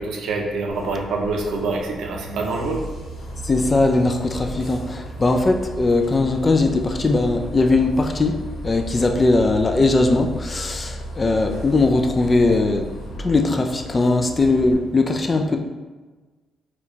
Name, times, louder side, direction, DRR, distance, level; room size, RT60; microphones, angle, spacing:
voice 1, 0.0-2.9 11.2-11.6, right 3 dB, 75° right, 1 dB, 0.6 m, -26 dB
Bus, 0.7-14.7, equal, 75° left, 1.0 m, -35 dB
voice 2, 3.4-8.4 8.6-12.8 13.2-15.6, left 2 dB, 30° left, 4 dB, 0.4 m, -19 dB
4.2 x 2.4 x 2.7 m, 1.3 s
cardioid pair, 90°, 0 cm